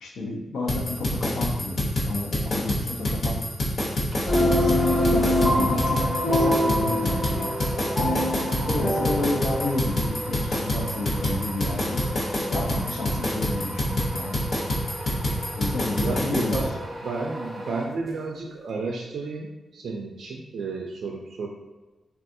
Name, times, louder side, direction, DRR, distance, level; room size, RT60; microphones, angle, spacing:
voice 1, 0.0-3.4 4.1-6.0 6.3-7.5 8.7-12.0 12.5-14.4 15.5-16.6, left 2 dB, 85° left, 1 dB, 0.5 m, -31 dB
sound 1, 0.7-16.7, left 1 dB, 55° left, 0.9 m, -27 dB
sound 2, 4.1-18.4, equal, 10° right, 0.5 m, -37 dB
sound 3, 4.3-9.7, left 1 dB, 30° left, 0.7 m, -24 dB
voice 2, 16.0-16.8 17.0-21.5, right 4 dB, 70° right, 0 dB, 0.3 m, -32 dB
3.5 x 2.3 x 2.6 m, 1.2 s
wide cardioid pair, 150°, 0 cm